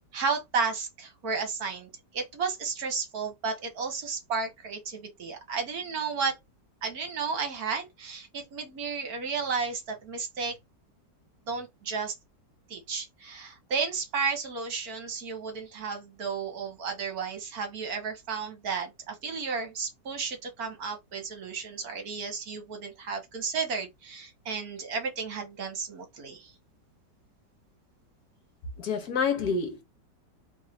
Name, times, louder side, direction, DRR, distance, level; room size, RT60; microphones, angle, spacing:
voice 1, 0.1-6.4 6.8-10.6 11.5-12.1 12.7-26.5, right 5 dB, 60° right, 1.4 m, -33 dB
voice 2, 28.8-29.8, left 5 dB, 60° left, 1.4 m, -28 dB
3.2 x 2.6 x 4.1 m
omnidirectional pair, 1.9 m